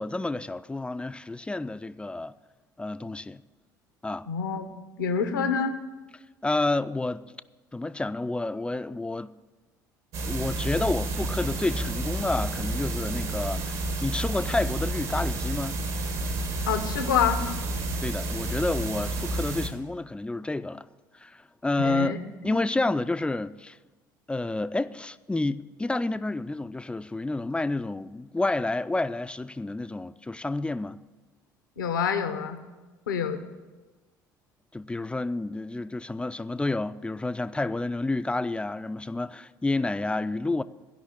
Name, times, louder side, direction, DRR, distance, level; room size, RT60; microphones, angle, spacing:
voice 1, 0.0-2.3 2.8-3.4 4.0-4.3 6.4-7.3 7.7-9.3 10.3-15.8 18.0-20.8 21.1-22.2 22.4-23.8 24.3-31.0 34.7-40.6, left 2 dB, 10° left, 0.4 m, -29 dB
voice 2, 4.3-4.7 5.0-5.8 16.7-17.4 21.8-22.2 22.4-22.6 31.8-32.6 33.1-33.4, left 7 dB, 80° left, 0.9 m, -27 dB
sound 1, 10.1-19.7, right 2 dB, 60° right, 1.7 m, -30 dB
14.5 x 5.6 x 8.6 m
figure-of-eight pair, 60°, 10 cm